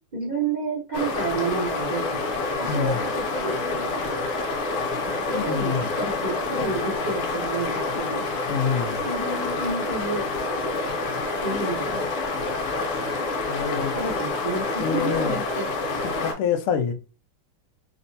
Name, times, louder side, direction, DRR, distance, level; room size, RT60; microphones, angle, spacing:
voice 1, 0.1-2.2 2.6-3.9 5.1-8.2 9.0-10.3 11.4-12.0 13.9-15.7, right 3 dB, 85° right, 0.4 m, -30 dB
sound 1, 0.9-16.3, left 3 dB, 75° left, 1.7 m, -28 dB
voice 2, 2.7-3.0 5.3-5.9 8.5-9.0 13.5-13.9 14.8-15.4 16.2-16.9, left 7 dB, 90° left, 1.5 m, -26 dB
5.8 x 2.1 x 2.7 m
omnidirectional pair, 2.4 m